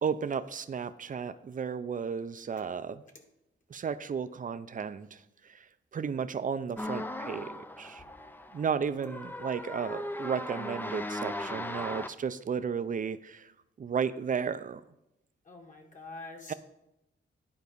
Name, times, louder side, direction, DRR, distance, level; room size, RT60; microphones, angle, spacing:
voice 1, 0.0-3.0 3.7-5.7 5.9-8.0 8.5-13.5 13.8-14.8 16.5-16.6, right 6 dB, 40° right, 13 dB, 0.5 m, -34 dB
sound 1, 6.8-12.1, left 1 dB, 10° left, 0.5 m, -38 dB
voice 2, 9.4-9.9 15.4-16.5, left 3 dB, 40° left, 2 dB, 1.6 m, -47 dB
11.0 x 4.6 x 5.3 m, 0.87 s
wide cardioid pair, 105°, 21 cm